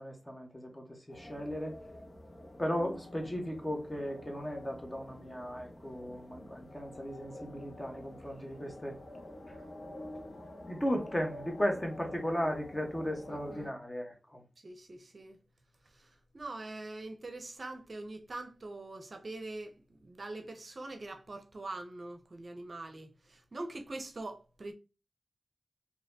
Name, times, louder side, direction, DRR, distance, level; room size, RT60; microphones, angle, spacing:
voice 1, 0.0-1.8 2.6-9.0 10.7-14.4, equal, 20° left, 1.1 m, -36 dB
sound 1, 1.1-13.7, left 1 dB, 60° left, 1.3 m, -48 dB
voice 2, 13.3-13.7 14.6-15.4 15.9-24.7, right 2 dB, 55° right, 0.6 m, -43 dB
4.1 x 2.8 x 2.7 m
wide cardioid pair, 80°, 0 cm